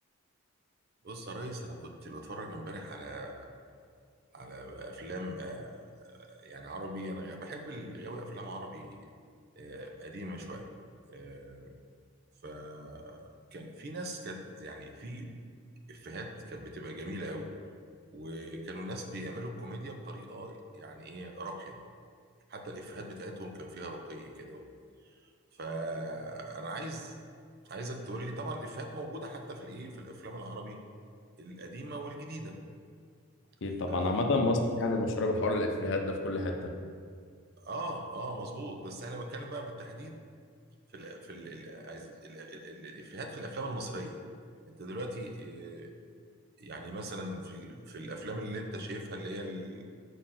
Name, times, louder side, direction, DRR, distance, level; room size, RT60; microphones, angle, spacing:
voice 1, 1.0-3.5 4.3-9.0 9.6-10.7 11.1-11.8 12.4-15.3 15.9-17.5 18.1-21.8 22.5-24.7 25.5-27.1 27.6-30.8 31.4-32.6 33.9-34.2 37.6-40.2 40.9-44.2 44.7-45.9 46.6-49.8, right 1 dB, 45° right, 3 dB, 0.6 m, -41 dB
voice 2, 33.6-36.7, left 2 dB, 55° left, 3 dB, 0.6 m, -29 dB
5.0 x 4.3 x 5.7 m, 2.1 s
head